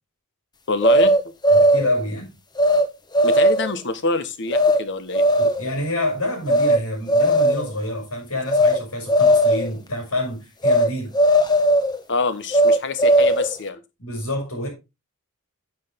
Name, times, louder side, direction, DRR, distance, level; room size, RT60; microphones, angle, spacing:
voice 1, 0.7-1.1 3.2-5.2 12.1-13.8, left 3 dB, 55° left, 1.2 m, -25 dB
sound 1, 0.8-1.9 2.6-2.8 3.1-3.7 4.5-4.8 5.1-5.7 6.5-6.8 7.1-7.7 8.5-8.8 9.1-9.7 10.6-10.9 11.1-12.0 12.5-13.5, equal, 20° left, 1.0 m, -17 dB
voice 2, 1.5-2.3 5.4-11.1 14.0-14.7, left 1 dB, 85° left, 5.8 m, -27 dB
9.4 x 8.0 x 3.6 m
head